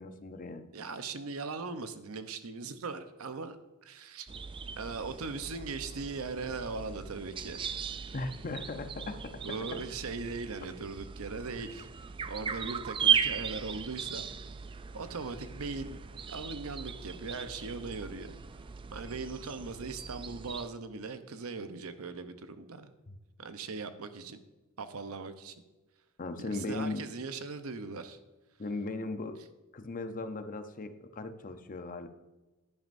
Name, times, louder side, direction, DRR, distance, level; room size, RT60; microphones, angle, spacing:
voice 1, 0.0-0.7 8.1-9.8 23.1-23.2 26.2-27.1 28.6-29.4 29.7-32.1, left 2 dB, 40° left, 9 dB, 0.7 m, -38 dB
voice 2, 0.7-4.3 4.8-7.6 9.4-11.9 12.3-14.3 14.9-18.3 18.9-22.9 23.4-24.4 24.8-25.5 26.4-28.2, right 4 dB, 75° right, 10 dB, 0.8 m, -39 dB
sound 1, 4.3-20.7, right 7 dB, 25° right, 0.3 m, -37 dB
10.5 x 10.5 x 2.6 m, 1.1 s
head